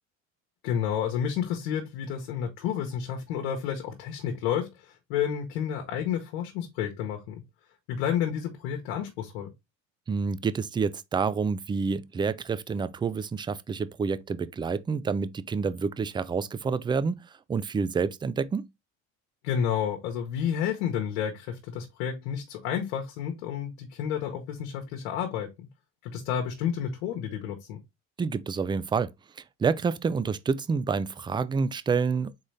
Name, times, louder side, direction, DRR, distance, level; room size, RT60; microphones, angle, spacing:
voice 1, 0.6-7.4 7.9-9.5 19.4-25.7 26.0-27.8, left 8 dB, 90° left, 1.0 m, -30 dB
voice 2, 10.1-17.2 17.5-18.7 28.2-29.1 29.6-32.3, right 5 dB, 15° right, 0.3 m, -28 dB
3.9 x 3.9 x 3.2 m
supercardioid pair, 95°, 34 cm